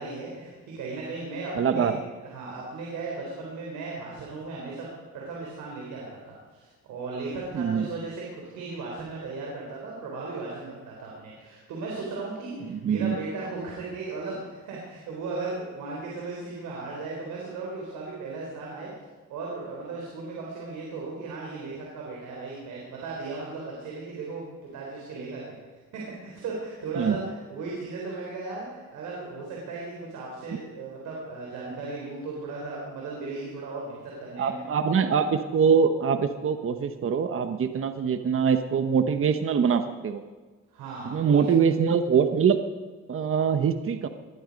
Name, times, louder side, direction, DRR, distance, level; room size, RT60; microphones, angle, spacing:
voice 1, 0.0-4.9 5.1-18.9 19.3-25.6 25.9-34.6 40.7-41.5, right 3 dB, 90° right, -3 dB, 3.9 m, -36 dB
voice 2, 1.6-2.0 7.5-7.9 12.7-13.2 27.0-27.2 34.4-40.2 41.1-42.6 43.1-44.1, right 6 dB, 45° right, 8 dB, 1.1 m, -23 dB
20.0 x 11.5 x 5.3 m, 1.3 s
cardioid pair, 90°, 30 cm